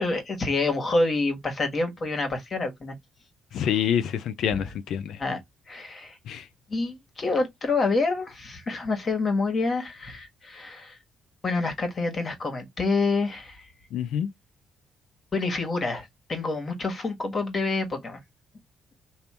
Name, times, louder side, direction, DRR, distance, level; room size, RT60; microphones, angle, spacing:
voice 1, 0.0-2.9 4.5-4.6 5.2-5.4 5.7-6.2 6.7-11.0 11.4-13.7 15.3-18.2, left 3 dB, 40° left, 1.6 m, -27 dB
voice 2, 3.5-5.2 6.3-6.5 13.9-14.3, left 9 dB, 75° left, 0.5 m, -27 dB
3.6 x 2.8 x 4.3 m
cardioid pair, 90°, 0 cm